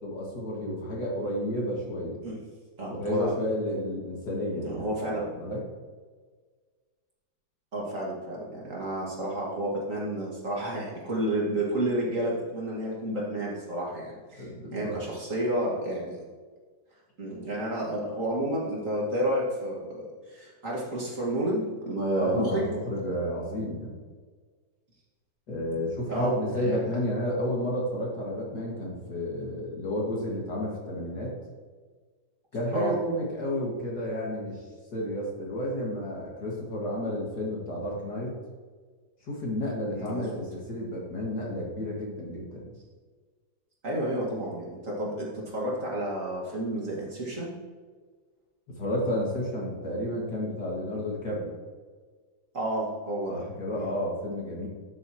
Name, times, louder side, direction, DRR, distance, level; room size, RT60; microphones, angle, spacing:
voice 1, 0.0-2.2 2.9-5.6 14.4-15.0 22.2-23.9 25.5-31.4 32.5-38.4 39.2-42.7 48.7-51.5 53.3-54.7, left 1 dB, 55° left, -4 dB, 2.8 m, -31 dB
voice 2, 2.8-3.3 4.6-5.2 7.7-16.2 17.2-22.6 26.1-26.8 32.7-33.0 39.9-40.4 43.8-47.5 52.5-53.4 53.7-53.9, right 1 dB, 40° right, -4 dB, 2.4 m, -31 dB
12.0 x 7.5 x 3.1 m, 1.5 s
omnidirectional pair, 2.1 m